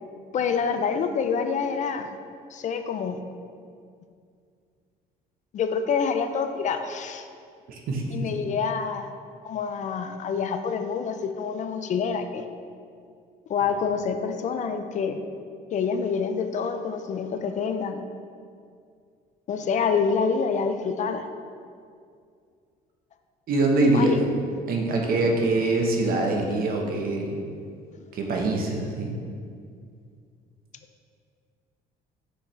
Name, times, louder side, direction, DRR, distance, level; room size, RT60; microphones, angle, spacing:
voice 1, 0.3-2.2 2.5-3.2 5.5-7.3 8.1-9.1 9.4-12.4 13.5-15.2 15.7-18.1 19.5-21.3 23.9-24.2 27.9-28.0, left 6 dB, 45° left, 8 dB, 0.4 m, -27 dB
voice 2, 7.7-8.0 23.5-24.1 24.7-27.4 28.1-29.1, right 2 dB, 60° right, 1 dB, 1.0 m, -24 dB
6.4 x 5.7 x 3.2 m, 2.3 s
cardioid pair, 110°, 17 cm